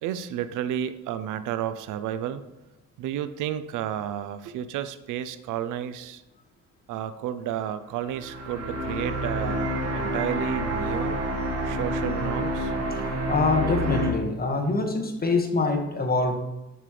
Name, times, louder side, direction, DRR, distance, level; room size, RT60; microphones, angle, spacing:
voice 1, 0.0-2.4 3.0-6.2 6.9-11.2 11.6-12.7, right 10 dB, 90° right, 12 dB, 0.6 m, -31 dB
sound 1, 8.0-14.1, right 1 dB, 55° right, 2.0 m, -28 dB
voice 2, 13.3-16.4, left 3 dB, 30° left, 3 dB, 1.8 m, -24 dB
12.5 x 5.4 x 3.3 m, 0.96 s
cardioid pair, 90°, 30 cm